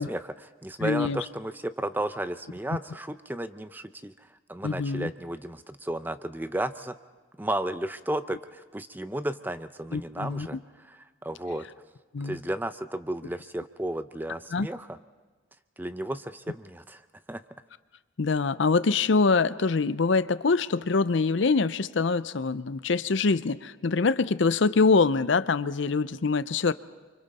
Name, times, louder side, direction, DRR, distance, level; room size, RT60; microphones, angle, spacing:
voice 1, 0.0-7.0 7.4-11.7 12.2-15.0 15.8-17.4, right 1 dB, 10° right, 12 dB, 0.6 m, -34 dB
voice 2, 0.8-1.2 4.6-5.1 9.9-10.5 12.1-12.4 14.5-14.7 18.2-26.7, left 4 dB, 65° left, 15 dB, 0.6 m, -24 dB
29.5 x 25.5 x 4.2 m, 1.4 s
head